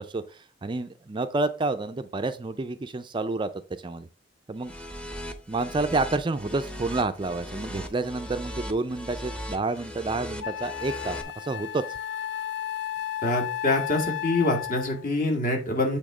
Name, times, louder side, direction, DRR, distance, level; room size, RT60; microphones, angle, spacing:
voice 1, 0.0-4.1 4.5-4.7 5.5-12.0, right 3 dB, 25° right, 9 dB, 0.4 m, -29 dB
sound 1, 4.6-11.2, equal, 5° left, 0.8 m, -38 dB
Wind instrument woodwind instrument, 9.8-9.9 10.4-15.1, left 10 dB, 65° left, 0.5 m, -33 dB
voice 2, 13.2-16.0, left 2 dB, 45° left, 2 dB, 2.0 m, -25 dB
8.5 x 3.5 x 4.9 m, 0.35 s
head